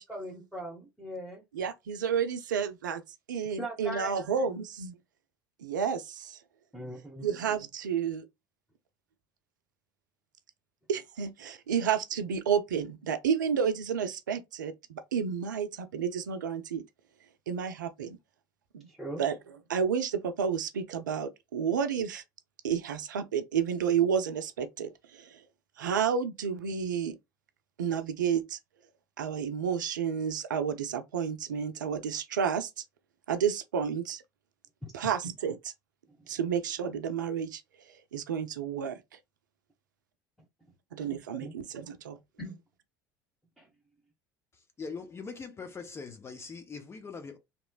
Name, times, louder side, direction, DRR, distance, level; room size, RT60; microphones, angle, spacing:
voice 1, 0.0-1.4 3.6-4.6 6.7-7.3 18.9-19.2 34.8-35.1 36.2-36.3 41.4-41.5 42.4-42.6 43.6-43.7, right 1 dB, ahead, 1.3 m, -40 dB
voice 2, 1.5-3.0 3.3-4.9 5.6-6.4 7.2-8.2 10.9-16.8 17.5-18.2 18.7-18.9 19.2-19.3 19.7-22.2 22.6-25.4 25.8-27.2 27.8-28.6 29.2-32.7 33.3-34.2 34.9-35.7 36.3-37.6 38.1-39.0 40.9-42.2, right 7 dB, 80° right, 0.5 m, -31 dB
voice 3, 44.8-47.4, left 4 dB, 25° left, 0.8 m, -41 dB
3.1 x 2.9 x 2.3 m
figure-of-eight pair, 70°, 10 cm